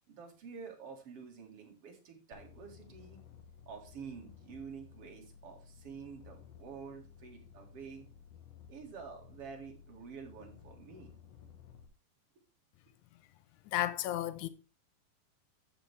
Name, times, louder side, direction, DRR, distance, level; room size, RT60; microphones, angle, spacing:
voice 1, 0.1-3.2 3.7-8.0 8.7-11.1, right 6 dB, 45° right, 2.7 m, -48 dB
sound 1, 2.3-11.9, left 7 dB, 65° left, 1.7 m, -56 dB
voice 2, 13.7-14.5, left 13 dB, 80° left, 1.8 m, -33 dB
13.0 x 7.1 x 3.5 m
omnidirectional pair, 4.1 m